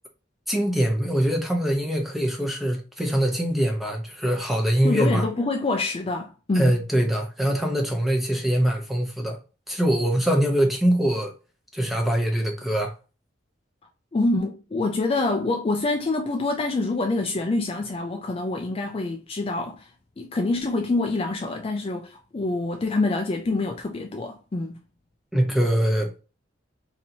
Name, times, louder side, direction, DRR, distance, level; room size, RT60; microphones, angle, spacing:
voice 1, 0.5-5.2 6.5-9.4 9.7-11.3 11.7-12.9 25.3-26.1, right 1 dB, ahead, 0.8 m, -23 dB
voice 2, 4.8-6.8 14.1-19.9 20.2-24.8, left 2 dB, 30° left, 0.4 m, -26 dB
3.0 x 2.8 x 3.8 m
head